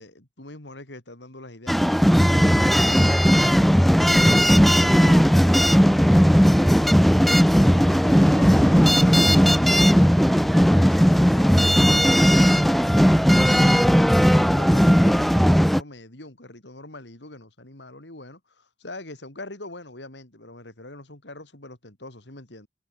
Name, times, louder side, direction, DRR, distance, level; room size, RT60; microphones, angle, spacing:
voice 1, 0.0-3.8 4.2-7.1 7.4-11.7 12.2-15.5 15.7-22.7, left 2 dB, 85° left, 4.4 m, -43 dB
sound 1, 1.7-15.8, equal, ahead, 0.6 m, -17 dB
head